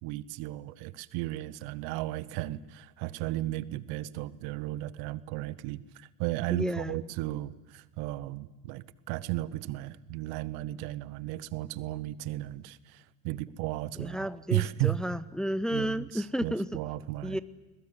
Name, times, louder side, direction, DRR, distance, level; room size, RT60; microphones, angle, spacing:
voice 1, 0.0-15.0 15.7-17.4, right 16 dB, 65° right, 18 dB, 1.0 m, -35 dB
voice 2, 6.5-6.9 14.0-16.7 17.2-17.4, equal, ahead, 14 dB, 0.7 m, -32 dB
21.5 x 20.5 x 8.2 m, 1.2 s
hypercardioid pair, 80°, 41 cm